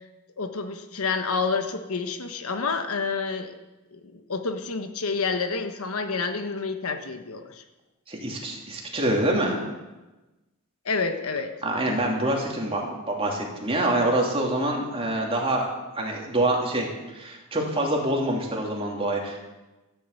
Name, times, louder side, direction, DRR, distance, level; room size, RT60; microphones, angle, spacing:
voice 1, 0.4-3.5 3.9-7.6 10.8-11.5, left 4 dB, 75° left, 8 dB, 1.1 m, -29 dB
voice 2, 8.1-9.6 11.6-19.4, right 1 dB, 25° right, -1 dB, 2.8 m, -26 dB
13.5 x 8.3 x 8.2 m, 1.1 s
head